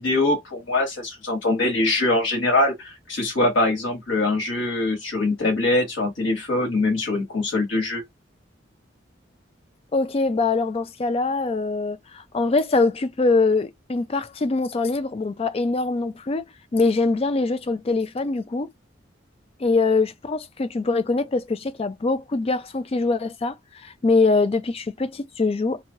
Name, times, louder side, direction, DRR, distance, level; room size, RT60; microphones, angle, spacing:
voice 1, 0.0-8.0, left 2 dB, 85° left, 1.3 m, -23 dB
voice 2, 9.9-18.7 19.6-23.5 23.8-25.8, left 3 dB, 30° left, 0.4 m, -23 dB
3.0 x 2.3 x 2.7 m
head